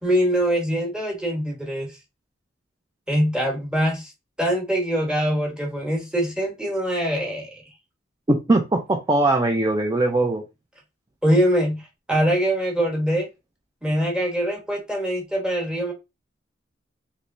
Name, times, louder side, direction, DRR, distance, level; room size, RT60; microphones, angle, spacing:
voice 1, 0.0-1.9 3.1-4.1 4.4-7.6 11.2-13.3 13.8-15.9, equal, 5° right, 1.1 m, -23 dB
voice 2, 8.3-10.4, right 2 dB, 20° right, 0.4 m, -20 dB
3.3 x 3.0 x 2.6 m
head